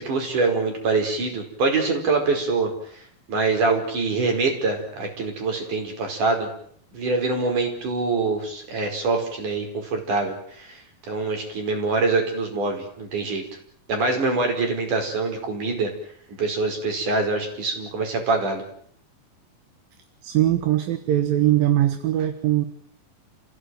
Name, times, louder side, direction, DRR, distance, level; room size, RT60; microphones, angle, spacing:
voice 1, 0.0-3.0 3.3-6.5 6.9-13.4 13.9-15.9 16.3-18.6, right 3 dB, 60° right, 4 dB, 6.3 m, -24 dB
voice 2, 20.2-22.7, right 13 dB, 75° right, 9 dB, 3.0 m, -21 dB
29.5 x 16.5 x 9.3 m, 0.65 s
omnidirectional pair, 4.1 m